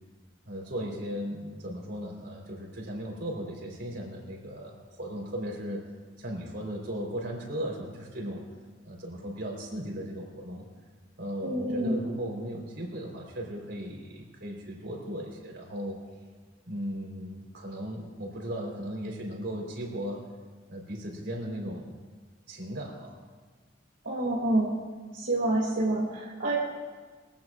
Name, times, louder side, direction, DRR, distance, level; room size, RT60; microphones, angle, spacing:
voice 1, 0.5-5.9 6.2-8.4 8.8-10.6 11.2-16.0 16.7-20.2 20.7-22.0 22.5-23.2, equal, 65° right, 0 dB, 3.8 m, -37 dB
voice 2, 11.4-12.0 24.0-24.7 25.1-26.6, right 1 dB, 80° right, -5 dB, 2.6 m, -27 dB
23.0 x 16.5 x 2.5 m, 1.4 s
head